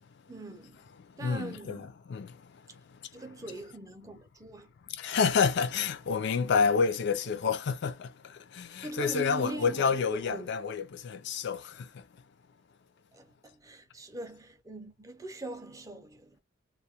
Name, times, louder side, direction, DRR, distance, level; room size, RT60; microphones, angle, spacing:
voice 1, 0.3-0.8 1.2-1.9 3.1-4.7 8.8-10.5 13.1-16.4, right 2 dB, 15° right, 0.5 m, -42 dB
voice 2, 0.9-3.6 4.9-12.1, left 5 dB, 55° left, 0.4 m, -30 dB
2.3 x 2.1 x 2.7 m
head